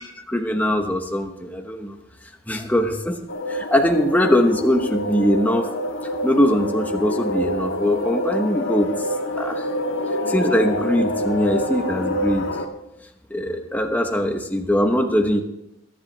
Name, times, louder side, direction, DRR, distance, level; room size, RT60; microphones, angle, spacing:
voice 1, 0.3-2.0 2.5-3.2 3.5-5.8 6.2-8.9 9.4-9.7 10.3-12.5 13.3-15.4, left 1 dB, 10° left, 4 dB, 1.1 m, -21 dB
sound 1, 3.3-12.7, equal, 70° left, 1.5 m, -26 dB
21.0 x 10.0 x 3.3 m, 0.85 s
head